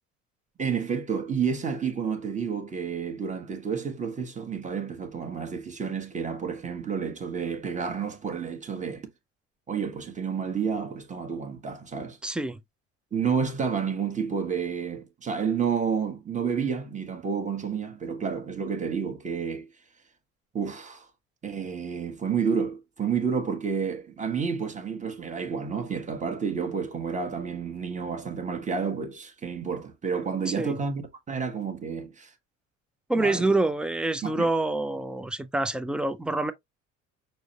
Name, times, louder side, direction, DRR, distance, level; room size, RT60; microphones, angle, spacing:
voice 1, 0.6-9.1 9.7-12.2 13.1-19.7 20.5-21.1 21.4-32.3 33.1-33.5 34.2-34.5, right 6 dB, 20° right, 1.1 m, -30 dB
voice 2, 12.2-12.6 30.5-30.8 33.1-36.5, right 2 dB, 5° right, 0.3 m, -26 dB
6.1 x 2.1 x 2.9 m
figure-of-eight pair, 60°, 39 cm